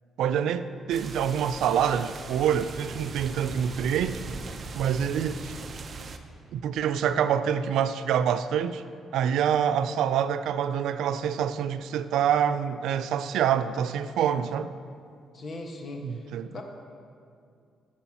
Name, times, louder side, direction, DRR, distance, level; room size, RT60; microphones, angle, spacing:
voice 1, 0.2-4.2 4.7-5.5 6.5-8.8 9.1-14.7 16.0-16.6, right 8 dB, 80° right, 12 dB, 0.3 m, -26 dB
sound 1, 0.9-6.2, right 4 dB, 45° right, 0.6 m, -39 dB
voice 2, 15.3-16.6, left 2 dB, 50° left, 2 dB, 1.3 m, -39 dB
15.0 x 6.9 x 2.9 m, 2.3 s
cardioid pair, 90°, 0 cm